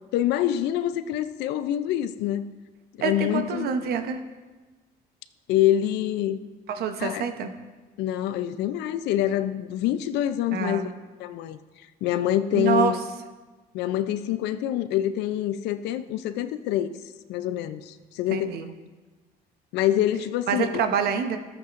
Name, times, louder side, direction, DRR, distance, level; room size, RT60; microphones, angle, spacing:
voice 1, 0.1-2.5 3.0-3.7 5.5-6.4 7.0-7.3 8.0-10.9 11.2-11.6 12.0-13.0 13.7-16.9 17.3-18.6 19.7-20.7, left 12 dB, 85° left, 12 dB, 0.5 m, -26 dB
voice 2, 3.0-4.2 6.7-7.5 10.5-10.9 12.5-13.0 18.3-18.7 20.5-21.4, right 7 dB, 70° right, 7 dB, 0.9 m, -26 dB
13.5 x 8.2 x 2.5 m, 1.3 s
cardioid pair, 110°, 17 cm